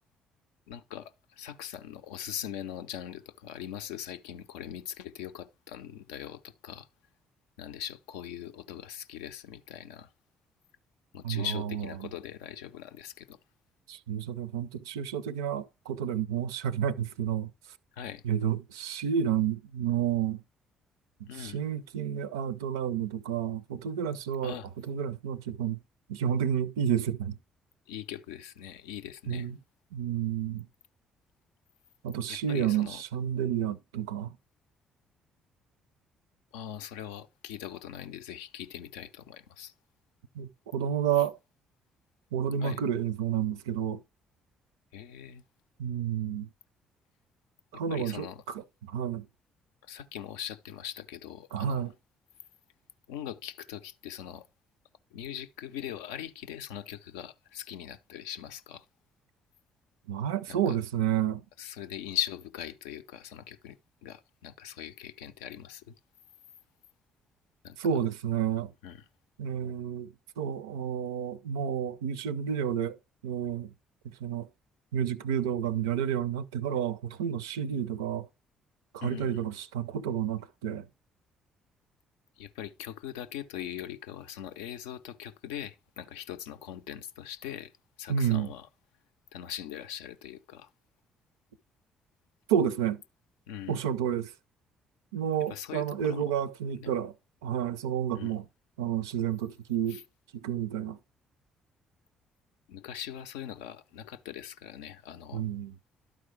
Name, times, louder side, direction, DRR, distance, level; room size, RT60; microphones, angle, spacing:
voice 1, 0.7-6.9 7.6-10.1 11.1-13.4 17.9-18.2 21.3-21.6 24.4-24.7 27.9-29.5 32.3-33.0 36.5-39.7 42.6-42.8 44.9-45.4 47.7-48.4 49.8-51.9 53.1-54.5 55.1-58.9 60.5-60.8 61.6-66.0 67.6-67.8 68.8-69.0 79.0-79.4 82.4-87.7 88.0-88.7 89.3-90.7 93.5-93.8 95.5-96.4 96.8-96.9 98.1-98.4 99.9-100.0 102.7-105.4, left 10 dB, 70° left, 0.4 m, -41 dB
voice 2, 11.2-12.1 13.9-17.5 18.2-20.4 21.2-25.8 26.1-27.4 29.3-29.6 29.9-30.7 32.0-34.3 40.3-41.3 42.3-44.0 45.8-46.5 47.7-49.3 51.5-51.9 60.1-61.4 67.8-68.7 69.4-73.0 73.2-73.7 74.0-74.5 74.9-78.3 78.9-80.9 88.1-88.5 92.5-93.0 93.7-94.3 95.1-97.1 97.4-98.4 98.8-100.0 100.3-101.0 105.3-105.8, right 9 dB, 75° right, 0.4 m, -30 dB
11.5 x 4.8 x 3.6 m
figure-of-eight pair, 45°, 2 cm